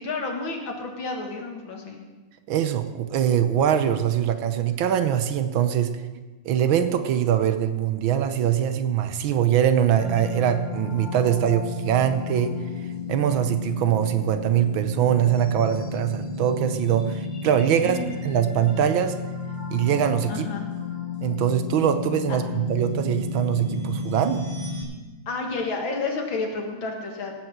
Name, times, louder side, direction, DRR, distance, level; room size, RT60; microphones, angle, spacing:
voice 1, 0.0-2.0 17.8-18.1 20.3-20.7 22.3-22.4 25.3-27.3, left 3 dB, 65° left, 2 dB, 2.6 m, -30 dB
voice 2, 2.5-5.9 6.4-12.5 13.1-19.2 19.7-20.5 21.2-24.4, right 9 dB, 70° right, 10 dB, 1.5 m, -23 dB
sound 1, 10.0-24.8, left 4 dB, 15° left, 2.3 m, -33 dB
16.5 x 6.0 x 7.3 m, 1.2 s
omnidirectional pair, 2.3 m